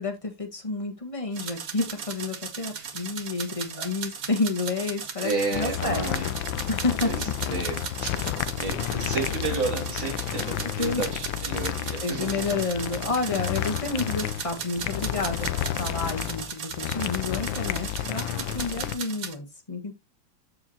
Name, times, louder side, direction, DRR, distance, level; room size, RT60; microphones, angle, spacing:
voice 1, 0.0-6.0 6.7-7.3 10.8-11.1 11.5-11.7 12.0-15.5 15.8-19.9, left 3 dB, 20° left, 1.4 m, -30 dB
sound 1, 1.3-19.3, right 6 dB, 50° right, 1.5 m, -37 dB
voice 2, 5.2-6.2 7.0-12.5, right 4 dB, 85° right, 4.6 m, -32 dB
sound 2, 5.5-18.9, left 12 dB, 80° left, 1.3 m, -31 dB
13.5 x 4.8 x 2.9 m
omnidirectional pair, 2.1 m